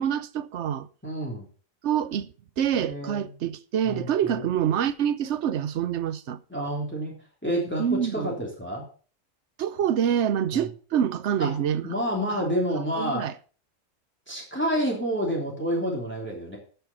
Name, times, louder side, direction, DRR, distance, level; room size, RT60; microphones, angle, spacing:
voice 1, 0.0-0.9 1.8-2.3 2.6-6.4 7.8-8.3 9.6-11.9 13.0-13.3, right 9 dB, 65° right, 1.0 m, -26 dB
voice 2, 1.0-1.5 2.8-3.3 3.8-4.5 6.5-7.1 7.4-8.8 10.5-10.7 11.4-11.5 11.8-13.3 14.3-16.6, equal, 10° left, 3.2 m, -29 dB
13.5 x 7.0 x 5.4 m
omnidirectional pair, 1.4 m